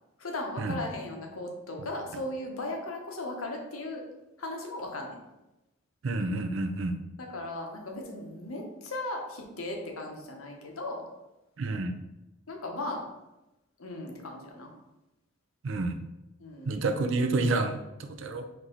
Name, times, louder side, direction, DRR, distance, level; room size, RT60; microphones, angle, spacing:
voice 1, 0.2-4.0 4.4-5.1 7.2-11.0 12.5-13.0 13.8-14.7 16.4-16.8, left 2 dB, 80° left, 1 dB, 0.9 m, -37 dB
voice 2, 6.0-6.9 11.6-11.9 15.6-16.0 16.6-18.5, right 2 dB, 60° right, 6 dB, 0.4 m, -29 dB
4.6 x 2.7 x 3.8 m, 0.96 s
head